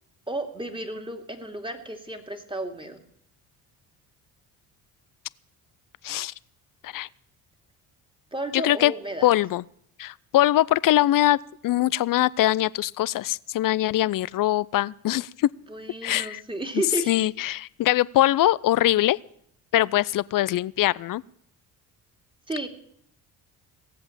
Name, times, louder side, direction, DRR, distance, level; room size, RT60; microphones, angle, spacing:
voice 1, 0.3-3.0 8.3-9.3 15.7-17.3 22.5-22.7, right 1 dB, 10° right, 6 dB, 2.6 m, -32 dB
voice 2, 8.5-8.9 9.2-9.6 10.0-11.4 11.6-15.5 16.0-16.4 17.1-19.2 19.7-21.2, left 14 dB, 45° left, 22 dB, 0.5 m, -22 dB
17.5 x 7.8 x 8.9 m, 0.70 s
hypercardioid pair, 55°, 47 cm